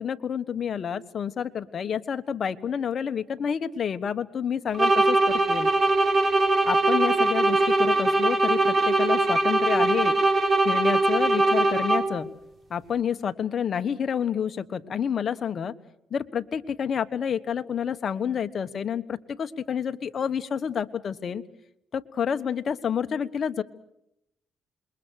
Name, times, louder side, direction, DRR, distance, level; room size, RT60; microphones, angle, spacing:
voice 1, 0.0-5.7 6.6-10.2 10.6-12.3 12.7-15.7 16.1-21.4 21.9-23.6, left 7 dB, 50° left, 9 dB, 1.3 m, -29 dB
sound 1, 4.7-12.3, right 2 dB, 35° right, 4.0 m, -21 dB
27.5 x 22.5 x 6.5 m, 0.80 s
cardioid pair, 90°, 0 cm